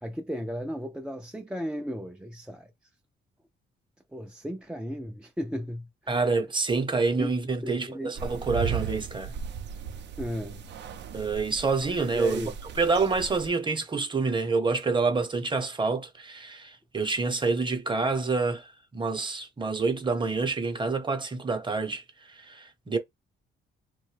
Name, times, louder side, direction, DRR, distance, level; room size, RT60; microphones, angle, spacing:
voice 1, 0.0-2.7 4.1-6.2 7.2-7.3 7.6-8.1 10.2-10.6 12.1-12.5, equal, 5° right, 0.3 m, -35 dB
voice 2, 6.1-9.3 11.1-12.4 12.8-22.0 22.3-23.0, right 4 dB, 25° right, 0.8 m, -27 dB
sound 1, 8.2-13.5, right 7 dB, 65° right, 0.5 m, -36 dB
2.6 x 2.2 x 3.2 m
cardioid pair, 90°, 20 cm